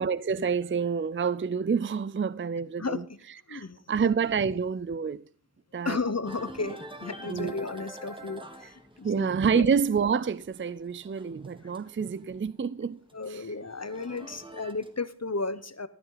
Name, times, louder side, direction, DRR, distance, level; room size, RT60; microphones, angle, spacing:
voice 1, 0.0-3.0 3.5-5.2 5.7-6.0 7.3-7.6 9.0-13.0 13.3-13.4, right 6 dB, 35° right, 0.4 m, -28 dB
voice 2, 2.8-3.2 3.5-3.8 5.8-9.7 13.1-15.9, left 3 dB, 45° left, 1.0 m, -34 dB
sound 1, 6.3-12.5 12.8-15.1, right 1 dB, 15° right, 1.6 m, -46 dB
13.5 x 12.0 x 4.0 m
wide cardioid pair, 45°, 37 cm